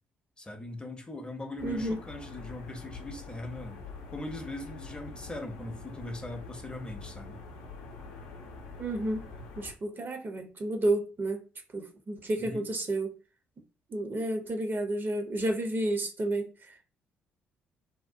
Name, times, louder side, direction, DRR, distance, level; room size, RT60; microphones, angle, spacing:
voice 1, 0.4-3.8 4.1-7.4 12.4-12.7, left 2 dB, 15° left, 0.6 m, -40 dB
sound 1, 1.6-9.7, left 3 dB, 70° left, 0.5 m, -45 dB
voice 2, 1.6-2.0 8.8-9.3 9.6-11.4 11.7-13.1 13.9-16.5, right 1 dB, 35° right, 0.6 m, -31 dB
2.7 x 2.0 x 2.5 m
figure-of-eight pair, 45°, 6 cm